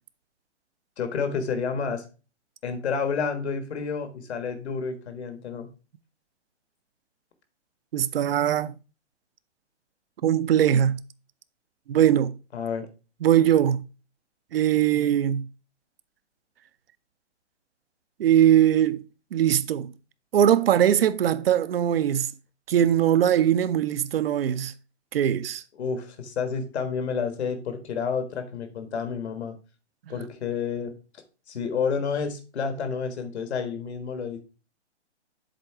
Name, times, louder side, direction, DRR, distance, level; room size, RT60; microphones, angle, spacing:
voice 1, 1.0-2.0 2.6-5.7 12.5-12.9 25.7-29.5 30.1-30.9 31.5-34.4, left 5 dB, 65° left, 1.6 m, -30 dB
voice 2, 7.9-8.7 10.2-11.0 11.9-12.3 13.2-13.8 14.5-15.4 18.2-19.0 19.3-19.9 20.3-22.3 22.7-24.7 25.1-25.6, right 10 dB, 55° right, 0.6 m, -21 dB
7.6 x 3.8 x 4.8 m
hypercardioid pair, 135°, 36 cm